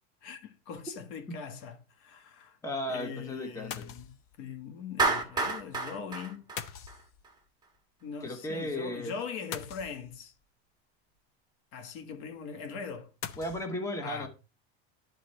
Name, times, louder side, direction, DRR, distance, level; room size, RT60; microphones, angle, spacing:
voice 1, 0.2-2.6 2.9-6.5 8.0-10.3 11.7-13.1 14.0-14.3, left 6 dB, 75° left, 1.7 m, -41 dB
sound 1, 0.8-1.0 3.7-4.4 6.6-7.5 9.5-10.4 13.2-13.7, left 9 dB, 40° left, 0.7 m, -42 dB
voice 2, 2.6-3.9 8.2-9.2 13.4-14.3, left 1 dB, 10° left, 1.2 m, -35 dB
Clapping, 5.0-7.3, right 3 dB, 10° right, 1.3 m, -30 dB
11.0 x 3.9 x 4.4 m
supercardioid pair, 145°, 33 cm